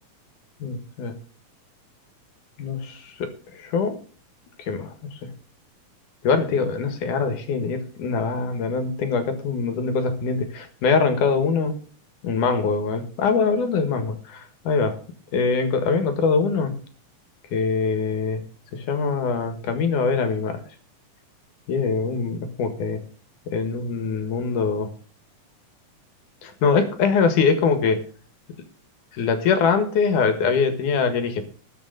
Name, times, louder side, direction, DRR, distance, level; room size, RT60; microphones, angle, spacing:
voice 1, 0.6-1.2 2.6-4.0 4.6-5.3 6.2-11.7 12.2-15.0 15.3-16.8 17.5-18.4 18.7-20.6 21.7-23.0 23.5-24.9 26.4-28.0 29.1-31.4, left 5 dB, 85° left, 8 dB, 3.2 m, -23 dB
20.0 x 6.9 x 4.0 m, 0.41 s
omnidirectional pair, 3.5 m